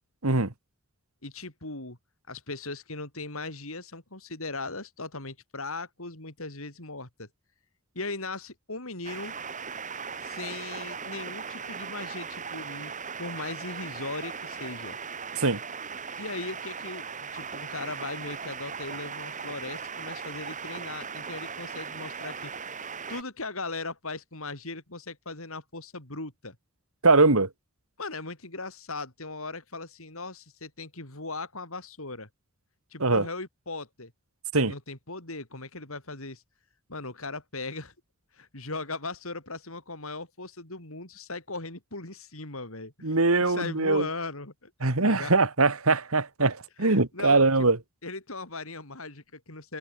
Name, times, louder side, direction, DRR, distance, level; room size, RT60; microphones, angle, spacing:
voice 1, 1.2-2.0 2.3-7.3 7.9-9.3 10.2-12.9 13.2-15.0 16.2-17.0 17.3-22.5 23.1-26.5 28.0-32.3 32.9-34.1 34.6-36.4 36.9-37.9 38.3-44.7 45.0-45.3 46.8-47.4 48.0-49.8, left 3 dB, 70° left, 5.1 m, -38 dB
sound 1, 9.0-23.2, right 6 dB, 35° right, 2.3 m, -38 dB
voice 2, 27.0-27.5 33.0-33.3 34.5-34.7 43.0-44.1 44.8-47.8, right 3 dB, 70° right, 2.2 m, -22 dB
head